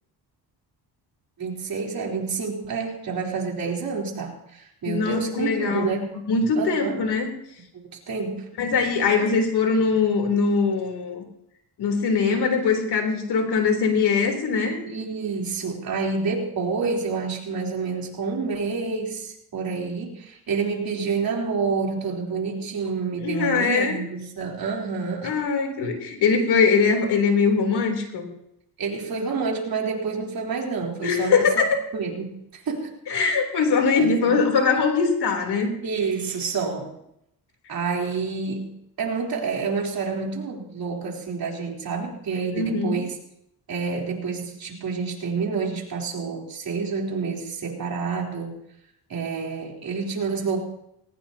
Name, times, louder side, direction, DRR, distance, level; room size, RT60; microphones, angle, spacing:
voice 1, 1.4-6.2 6.6-7.0 7.9-8.5 9.1-9.2 14.9-25.3 28.8-31.6 31.9-33.0 34.0-34.4 35.8-37.0 37.7-43.1 43.7-48.6 49.1-50.6, right 5 dB, 60° right, -1 dB, 3.9 m, -28 dB
voice 2, 4.9-6.0 6.3-7.3 8.6-11.2 11.8-14.9 23.2-24.0 25.2-28.3 31.0-31.8 33.1-35.7 42.5-43.0, left 5 dB, 75° left, 3 dB, 3.6 m, -22 dB
20.0 x 18.5 x 2.9 m, 0.79 s
cardioid pair, 110°, 40 cm